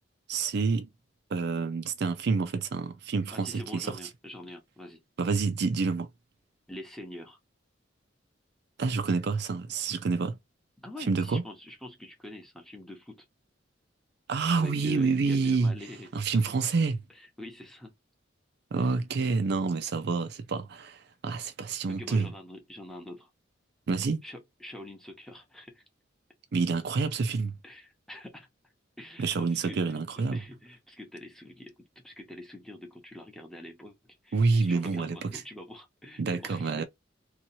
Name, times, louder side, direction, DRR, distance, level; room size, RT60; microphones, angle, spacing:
voice 1, 0.3-0.9 1.3-4.0 5.2-6.1 8.8-10.4 11.1-11.4 14.3-15.7 16.1-17.0 18.7-22.3 23.9-24.2 26.5-27.6 29.2-30.4 34.3-35.4 36.2-36.8, right 4 dB, 60° right, 0.4 m, -28 dB
voice 2, 3.3-5.0 6.7-7.4 10.8-13.2 14.5-16.5 17.1-17.9 18.8-18.9 21.9-23.3 24.2-25.8 27.6-28.5 29.0-36.8, left 1 dB, ahead, 0.7 m, -45 dB
2.7 x 2.3 x 2.7 m
head